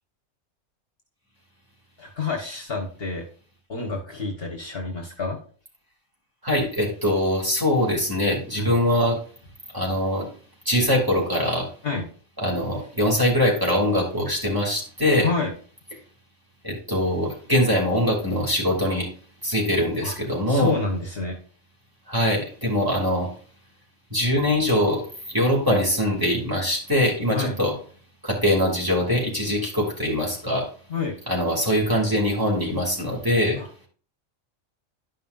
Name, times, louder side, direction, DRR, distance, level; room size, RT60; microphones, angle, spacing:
voice 1, 2.0-3.3 3.7-5.4 8.6-8.7 11.8-12.1 15.2-15.5 20.0-20.1 20.5-21.4 27.3-27.6 30.9-31.2 33.6-33.7, left 4 dB, 45° left, 1 dB, 1.5 m, -28 dB
voice 2, 6.4-9.2 9.7-10.3 10.6-11.7 12.4-15.3 16.6-19.1 19.4-20.7 22.1-23.3 24.1-27.7 28.2-30.7 31.3-33.6, left 1 dB, 15° right, -3 dB, 2.8 m, -22 dB
11.5 x 5.5 x 2.6 m, 0.43 s
omnidirectional pair, 1.4 m